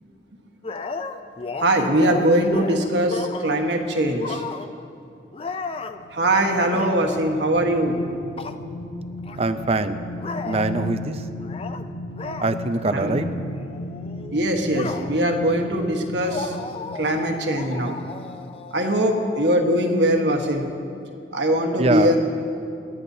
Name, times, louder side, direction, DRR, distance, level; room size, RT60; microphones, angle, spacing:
sound 1, 0.6-3.7 4.1-4.9 5.3-6.0 6.7-7.3 8.4-8.6 9.2-9.4 10.2-10.8 11.4-11.9 12.2-12.5 13.1-13.3 13.5-15.4 16.2-19.6, left 3 dB, 30° left, 0.4 m, -34 dB
voice 1, 1.6-4.4 6.1-7.9 12.9-13.1 14.3-16.5 17.0-18.0 18.7-20.6 21.3-22.2, right 1 dB, 75° right, 2 dB, 1.3 m, -21 dB
sound 2, 5.7-18.6 19.1-19.2, left 1 dB, 75° left, 0.8 m, -36 dB
voice 2, 9.4-10.0 10.4-11.2 12.4-13.3 21.8-22.1, right 2 dB, 35° right, 10 dB, 0.5 m, -23 dB
28.5 x 9.8 x 2.8 m, 2.6 s
head